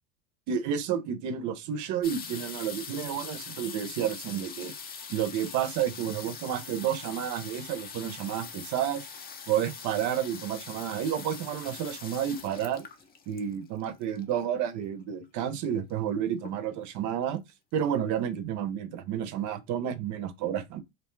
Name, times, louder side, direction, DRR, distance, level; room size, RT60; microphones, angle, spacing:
voice 1, 0.5-4.7 5.1-9.1 9.5-12.9 13.3-17.4 17.7-20.8, right 9 dB, 55° right, 0.6 m, -30 dB
sound 1, 2.0-14.6 15.4-15.5 15.7-16.1 16.4-17.0 17.5-17.6 17.8-17.9, left 6 dB, 25° left, 0.5 m, -43 dB
2.7 x 2.1 x 3.1 m
supercardioid pair, 95°, 36 cm